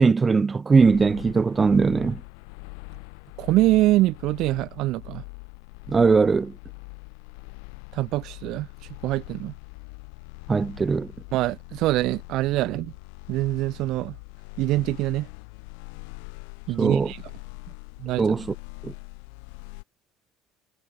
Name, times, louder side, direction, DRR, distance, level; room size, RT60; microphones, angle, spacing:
voice 1, 0.0-2.2 5.9-6.5 10.5-11.1 16.8-17.1 18.2-18.5 18.8-18.9, right 4 dB, 25° right, 2.6 m, -20 dB
sound 1, 0.7-19.8, left 37 dB, 75° left, 3.9 m, -42 dB
voice 2, 3.4-5.2 7.9-8.7 9.0-9.5 11.3-12.9 13.3-14.2 14.6-15.3 16.7-17.2 18.0-18.4, right 17 dB, 65° right, 2.1 m, -24 dB
hypercardioid pair, 75°, 0 cm